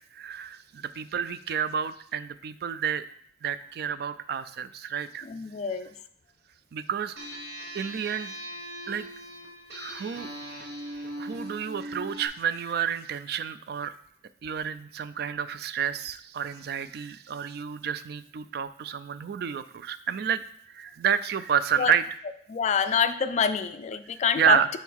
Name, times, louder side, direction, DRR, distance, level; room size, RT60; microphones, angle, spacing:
voice 1, 0.1-3.0 3.4-5.3 6.7-7.1 7.7-8.3 8.9-9.1 9.7-10.3 11.2-14.0 14.4-20.4 20.7-22.0 24.4-24.7, right 8 dB, 60° right, 14 dB, 0.3 m, -29 dB
voice 2, 5.2-5.9 21.8-21.9 22.5-24.6, left 6 dB, 40° left, 11 dB, 0.3 m, -26 dB
sound 1, 7.2-12.3, equal, 80° right, 1.2 m, -39 dB
5.4 x 4.4 x 4.6 m, 0.63 s
head